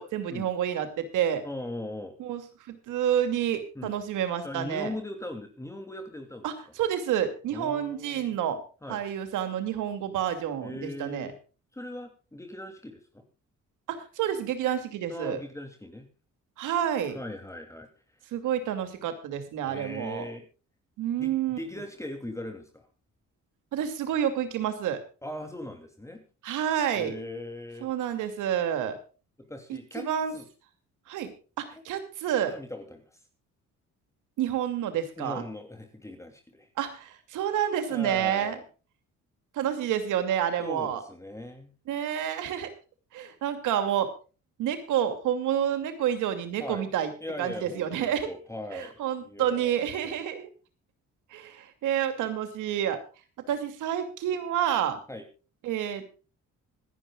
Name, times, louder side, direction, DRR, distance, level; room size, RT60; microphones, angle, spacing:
voice 1, 0.0-1.4 2.2-2.4 2.7-4.9 6.4-8.6 8.9-11.3 13.9-15.4 16.6-17.2 18.3-20.3 21.0-21.6 23.7-25.0 26.4-27.1 27.8-29.0 29.7-30.3 31.1-32.5 34.4-35.4 36.8-38.6 39.5-41.0 41.9-42.7 43.1-44.1 44.6-47.1 47.4-48.3 48.7-50.5 51.3-53.0 53.5-55.0 55.6-56.1, right 10 dB, 90° right, 8 dB, 2.6 m, -29 dB
voice 2, 1.4-2.1 3.7-3.9 4.4-6.5 7.5-8.3 8.8-9.0 10.6-11.4 11.7-13.2 15.1-16.1 17.1-17.9 19.6-20.5 21.2-22.9 25.2-26.2 26.9-27.9 29.5-30.1 30.3-30.5 31.7-31.8 32.4-33.0 35.2-36.7 37.9-38.6 40.6-41.7 46.6-46.8 47.2-50.2 55.1-55.2, left 1 dB, 10° left, 4 dB, 2.9 m, -39 dB
26.0 x 10.5 x 2.4 m, 0.35 s
cardioid pair, 90°, 30 cm